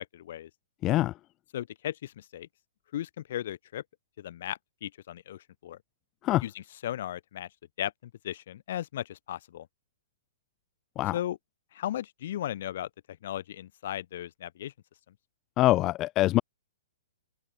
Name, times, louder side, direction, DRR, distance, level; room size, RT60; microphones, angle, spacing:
voice 1, 0.1-0.5 1.5-2.5 2.9-3.8 4.2-5.8 6.4-7.5 7.8-9.7 11.1-11.4 11.7-12.9 13.2-14.7, left 12 dB, 55° left, 6.1 m, -36 dB
voice 2, 0.8-1.1 6.2-6.4 10.9-11.1 15.6-16.4, left 16 dB, 30° left, 1.6 m, -24 dB
open air
figure-of-eight pair, 120°, 0 cm